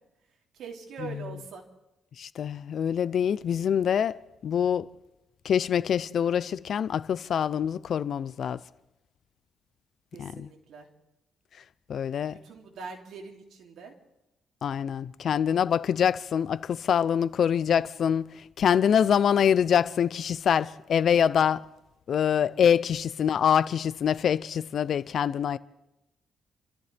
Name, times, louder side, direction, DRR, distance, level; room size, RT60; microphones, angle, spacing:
voice 1, 0.5-1.6 10.1-10.9 12.3-13.9, right 5 dB, 70° right, 3.0 m, -42 dB
voice 2, 2.2-4.9 5.4-8.6 10.2-10.5 11.9-12.4 14.6-21.7 22.1-25.6, left 8 dB, 60° left, 0.6 m, -25 dB
29.0 x 14.0 x 3.5 m
cardioid pair, 90°, 0 cm